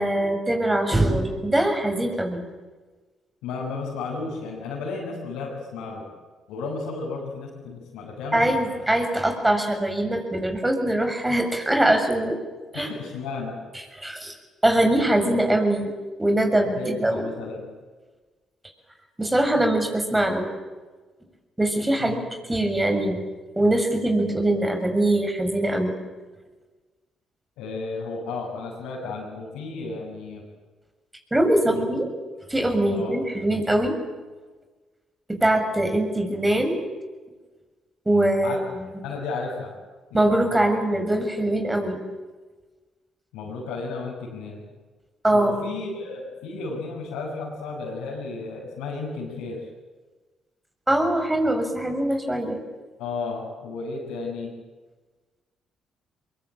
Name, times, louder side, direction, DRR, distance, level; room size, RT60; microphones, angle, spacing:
voice 1, 0.0-2.4 8.3-12.4 12.7-12.9 13.9-14.3 14.6-15.9 16.2-17.3 19.2-20.5 21.6-22.2 22.5-23.2 23.5-25.9 31.3-32.0 32.5-34.0 35.3-36.9 38.0-39.0 40.1-42.0 45.2-45.6 50.9-52.6, right 1 dB, 15° right, 5 dB, 6.9 m, -22 dB
voice 2, 3.4-6.1 6.5-8.8 12.7-13.6 16.8-17.7 22.0-22.3 27.6-30.4 31.7-31.8 32.9-33.2 38.4-38.6 39.0-39.7 40.1-40.2 40.5-40.6 43.3-44.6 45.3-49.6 53.0-54.5, left 3 dB, 80° left, -6 dB, 6.5 m, -33 dB
23.5 x 22.5 x 9.0 m, 1.3 s
hypercardioid pair, 50°, 0 cm